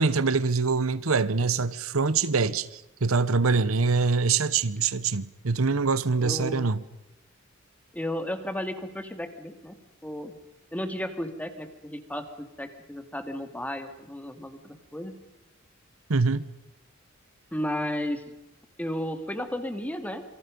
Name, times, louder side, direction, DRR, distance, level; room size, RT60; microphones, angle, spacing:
voice 1, 0.0-6.8 16.1-16.5, right 4 dB, 85° right, 1.0 m, -24 dB
voice 2, 6.2-6.7 7.9-9.8 10.0-10.3 10.7-15.2 17.5-18.2 18.8-20.2, left 1 dB, 5° left, 2.4 m, -33 dB
27.5 x 24.5 x 5.4 m
head